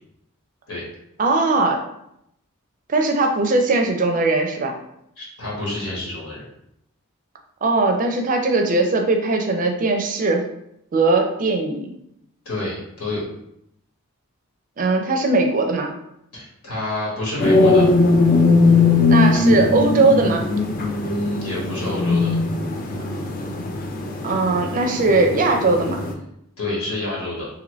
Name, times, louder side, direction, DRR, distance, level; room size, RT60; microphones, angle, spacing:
voice 1, 1.2-1.8 2.9-4.7 7.6-10.4 10.9-11.9 14.8-15.9 19.1-20.4 24.2-26.0, right 3 dB, 35° right, 3 dB, 0.4 m, -19 dB
voice 2, 5.2-6.5 12.4-13.2 16.3-17.9 21.1-22.3 26.6-27.5, left 2 dB, 80° left, -5 dB, 1.3 m, -28 dB
sound 1, 17.4-26.1, left 3 dB, 40° left, 0.4 m, -19 dB
2.8 x 2.6 x 3.0 m, 0.77 s
head